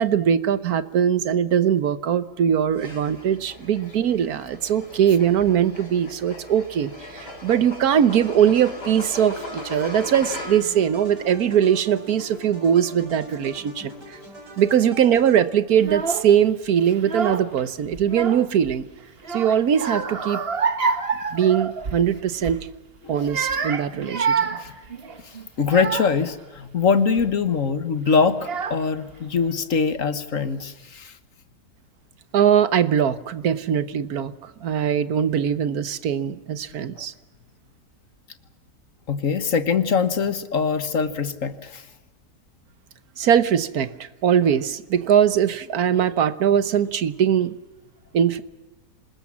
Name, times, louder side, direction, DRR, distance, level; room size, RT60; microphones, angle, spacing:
voice 1, 0.0-14.2 14.6-18.8 19.3-20.4 21.3-22.6 23.1-24.3 32.3-37.1 43.2-47.6 48.1-48.4, right 9 dB, 65° right, 14 dB, 1.4 m, -21 dB
sound 1, 2.7-10.8, left 2 dB, 70° left, 6.4 m, -39 dB
sound 2, 8.1-15.8, left 1 dB, 85° right, 8.8 m, -42 dB
Child speech kid speaking / Crying sobbing, 15.8-16.3 16.9-17.6 17.9-18.8 19.2-22.1 22.4-22.7 23.2-26.3 26.9-27.3 28.1-28.2 28.4-29.1, right 5 dB, 40° right, 1.3 m, -27 dB
voice 2, 25.6-31.1 37.0-37.1 39.1-41.8, left 5 dB, 50° left, 12 dB, 1.6 m, -23 dB
26.5 x 20.5 x 7.3 m, 1.1 s
omnidirectional pair, 1.8 m